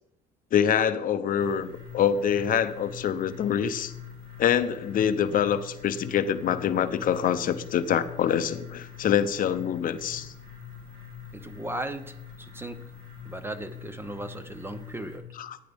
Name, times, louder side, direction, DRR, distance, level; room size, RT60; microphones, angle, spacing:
voice 1, 0.5-3.9 4.4-10.3 15.4-15.6, left 8 dB, 55° left, 10 dB, 0.7 m, -25 dB
sound 1, 1.4-15.2, left 8 dB, 70° right, 3.5 m, -44 dB
voice 2, 11.3-12.8 13.2-15.3, right 1 dB, 15° right, 10 dB, 0.7 m, -37 dB
14.0 x 9.2 x 3.5 m, 0.86 s
cardioid pair, 110°, 17 cm